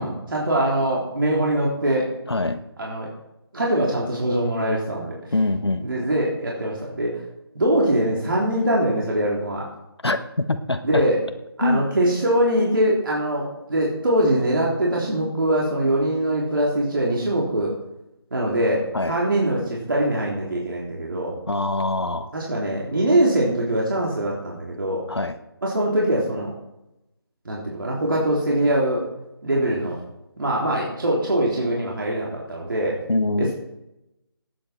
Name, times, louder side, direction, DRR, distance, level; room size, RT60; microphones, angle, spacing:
voice 1, 0.0-2.1 2.8-3.1 3.5-5.1 5.8-7.2 7.6-9.7 10.8-11.2 11.6-17.7 18.3-21.4 22.3-25.1 25.6-26.5 27.5-29.1 29.4-30.0 30.4-33.0 33.4-33.5, right 1 dB, 55° right, -3 dB, 3.6 m, -22 dB
voice 2, 2.3-2.6 5.3-5.9 10.0-11.1 11.6-11.8 18.9-19.2 21.5-22.3 25.1-25.3 33.1-33.5, left 2 dB, 85° left, 8 dB, 1.2 m, -24 dB
18.5 x 8.8 x 4.5 m, 0.89 s
figure-of-eight pair, 160°, 13 cm